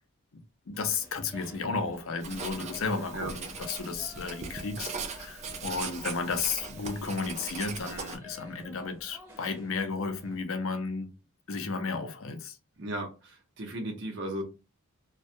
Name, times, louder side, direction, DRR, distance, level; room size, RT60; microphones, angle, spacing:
voice 1, 0.7-11.1 11.5-12.6, left 4 dB, 70° left, 0.5 m, -33 dB
sound 1, 0.7-10.4, left 2 dB, 10° right, 0.7 m, -51 dB
Writing, 2.2-8.2, right 5 dB, 30° right, 0.3 m, -40 dB
voice 2, 12.8-14.4, right 1 dB, 55° right, 0.8 m, -36 dB
2.2 x 2.1 x 2.6 m
head